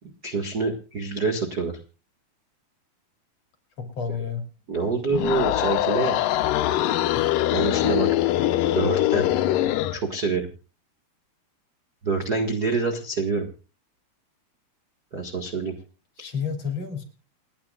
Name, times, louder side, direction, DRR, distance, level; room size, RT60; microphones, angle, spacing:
voice 1, 0.0-1.8 4.7-6.2 7.5-8.1 8.7-9.3 9.9-10.5 12.0-13.5 15.1-15.7, right 4 dB, 40° right, 4 dB, 1.4 m, -26 dB
voice 2, 3.8-4.4 7.1-7.3 8.4-8.5 16.2-17.0, left 6 dB, 45° left, 6 dB, 3.7 m, -31 dB
sound 1, 5.1-10.0, left 13 dB, 75° left, 2.1 m, -23 dB
29.0 x 10.5 x 2.4 m, 0.33 s
omnidirectional pair, 4.6 m